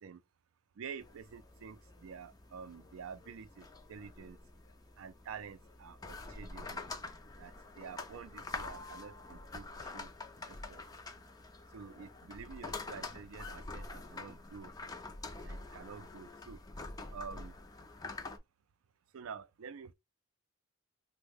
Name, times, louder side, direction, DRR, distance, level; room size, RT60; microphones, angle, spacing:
voice 1, 0.8-4.4 5.0-6.8 7.4-10.1 10.5-10.8 11.7-14.7 15.4-16.6 17.1-17.5 19.1-19.9, right 6 dB, 65° right, 0.4 m, -48 dB
sound 1, 1.0-18.4, left 3 dB, 20° left, 0.4 m, -46 dB
3.2 x 2.1 x 3.3 m
head